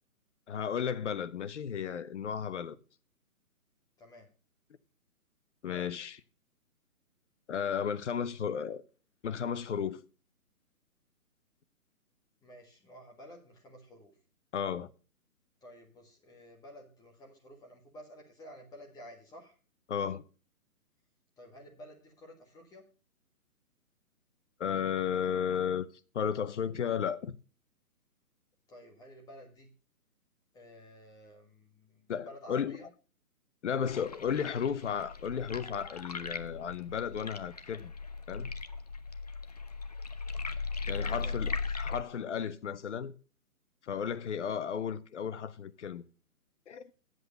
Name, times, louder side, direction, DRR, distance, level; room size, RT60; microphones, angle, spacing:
voice 1, 0.5-2.8 5.6-6.2 7.5-8.8 9.2-10.0 14.5-14.9 19.9-20.2 24.6-25.9 26.1-27.3 32.1-32.8 33.6-37.9 38.3-38.5 40.9-41.5 41.8-43.1 43.8-46.0 46.7-46.9, left 7 dB, 50° left, 0.9 m, -34 dB
voice 2, 4.0-4.3 12.4-14.1 15.6-19.6 21.4-22.8 28.7-29.7 30.5-32.9 40.8-41.8, equal, 10° left, 1.7 m, -52 dB
sound 1, 33.8-42.0, left 4 dB, 30° left, 0.4 m, -38 dB
9.6 x 7.9 x 6.7 m
hypercardioid pair, 150°, 44 cm